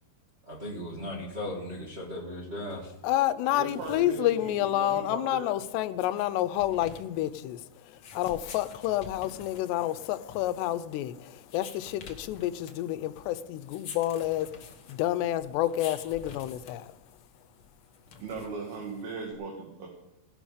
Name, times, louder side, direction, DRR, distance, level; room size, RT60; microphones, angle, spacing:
voice 1, 0.4-2.9, left 1 dB, 20° right, 1.7 m, -37 dB
voice 2, 3.0-7.6 8.1-11.1 11.5-14.5 14.9-16.9, left 13 dB, 90° left, 2.8 m, -29 dB
sound 1, 3.5-19.3, left 5 dB, 70° left, 1.3 m, -49 dB
voice 3, 3.5-5.5 18.2-19.9, right 4 dB, 65° right, 3.8 m, -38 dB
17.5 x 11.5 x 5.1 m
omnidirectional pair, 4.8 m